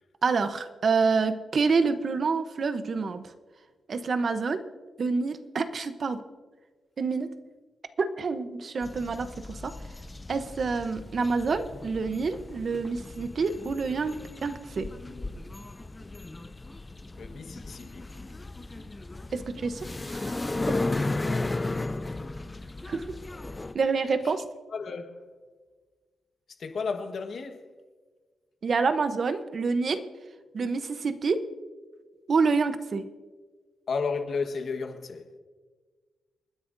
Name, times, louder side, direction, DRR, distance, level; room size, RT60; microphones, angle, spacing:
voice 1, 0.2-3.3 3.9-4.6 5.0-6.2 7.0-7.3 8.0-9.7 10.3-14.2 14.4-14.9 19.3-19.8 20.1-20.3 22.9-23.0 23.7-24.5 28.6-30.0 30.5-31.5 32.3-33.1, right 4 dB, 50° right, 0.8 m, -27 dB
sound 1, 8.8-23.7, left 2 dB, 20° left, 0.6 m, -35 dB
voice 2, 17.2-18.0 21.2-21.4 24.7-25.2 26.6-27.6 33.9-35.3, left 5 dB, 55° left, 1.3 m, -33 dB
28.0 x 10.0 x 2.7 m
cardioid pair, 105°, 0 cm